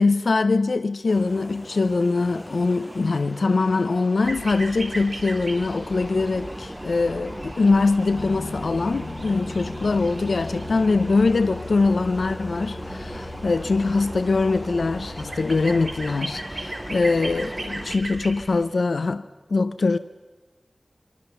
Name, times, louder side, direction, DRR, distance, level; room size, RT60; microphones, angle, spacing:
voice 1, 0.0-20.0, left 3 dB, 85° left, 0.7 m, -23 dB
sound 1, 1.1-18.0, equal, ahead, 0.7 m, -38 dB
sound 2, 4.2-18.6, right 2 dB, 70° right, 5.2 m, -38 dB
Piano, 8.1-16.2, left 3 dB, 60° left, 1.3 m, -39 dB
27.0 x 23.0 x 6.9 m
wide cardioid pair, 55°, 0 cm